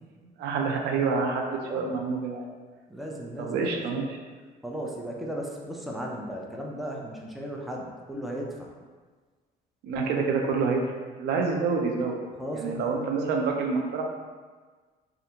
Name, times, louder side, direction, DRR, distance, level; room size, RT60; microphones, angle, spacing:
voice 1, 0.4-2.4 3.4-4.2 9.8-10.8 11.2-12.2 12.5-14.0, right 4 dB, 85° right, 1 dB, 0.5 m, -27 dB
voice 2, 1.6-2.0 2.9-3.8 4.6-8.7 12.4-12.9, equal, ahead, -2 dB, 0.4 m, -36 dB
3.2 x 2.5 x 2.8 m, 1.4 s
cardioid pair, 110°, 17 cm